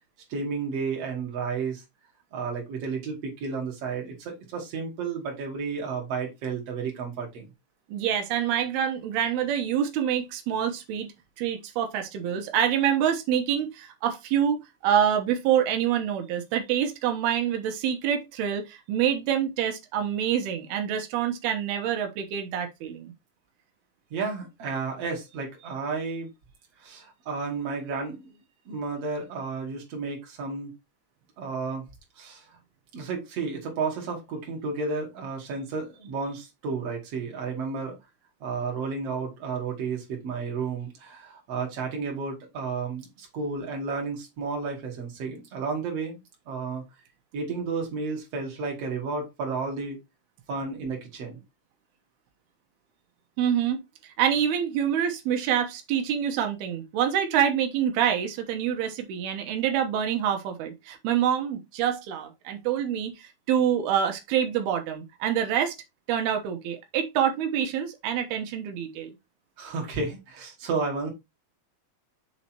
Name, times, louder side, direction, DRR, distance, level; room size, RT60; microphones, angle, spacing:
voice 1, 0.3-1.8 2.3-7.5 24.1-26.3 26.8-28.3 28.7-30.7 31.4-31.9 32.2-32.5 32.9-38.0 38.4-46.2 46.5-46.8 47.3-50.0 50.5-51.4 69.6-71.1, right 4 dB, 45° right, 3.1 m, -32 dB
voice 2, 7.9-11.1 11.4-23.1 53.4-65.7 66.1-69.1, right 9 dB, 85° right, 3.0 m, -26 dB
6.9 x 4.2 x 4.5 m
omnidirectional pair, 4.4 m